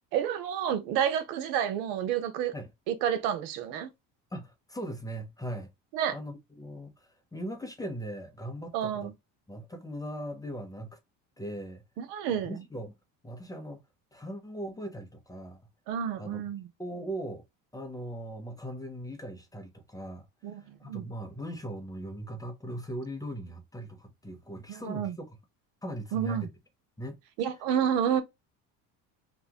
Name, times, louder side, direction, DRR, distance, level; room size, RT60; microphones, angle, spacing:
voice 1, 0.1-2.5 2.9-3.9 5.9-6.1 8.7-9.1 12.0-12.6 15.9-16.7 20.4-21.0 24.7-25.1 26.1-26.5 27.4-28.2, right 9 dB, 90° right, 0.8 m, -30 dB
voice 2, 4.3-5.7 6.1-9.1 9.5-11.0 11.4-11.8 12.3-12.9 13.2-13.8 14.1-15.6 16.2-16.5 16.8-17.4 17.7-20.2 20.5-25.4 25.8-26.5 27.0-27.2, right 1 dB, 10° left, 0.8 m, -39 dB
3.0 x 2.5 x 3.5 m
supercardioid pair, 110°, 36 cm